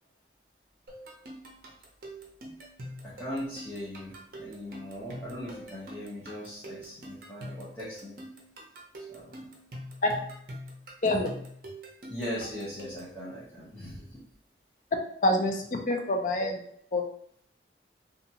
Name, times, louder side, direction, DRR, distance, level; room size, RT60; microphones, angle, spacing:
sound 1, 0.9-13.2, equal, 50° right, 0.6 m, -44 dB
voice 1, 3.0-8.2 9.1-9.3 12.1-14.2, equal, 10° left, -11 dB, 0.8 m, -39 dB
voice 2, 15.2-16.6 16.9-17.0, left 1 dB, 45° left, 2 dB, 0.4 m, -26 dB
2.8 x 2.3 x 2.8 m, 0.63 s
head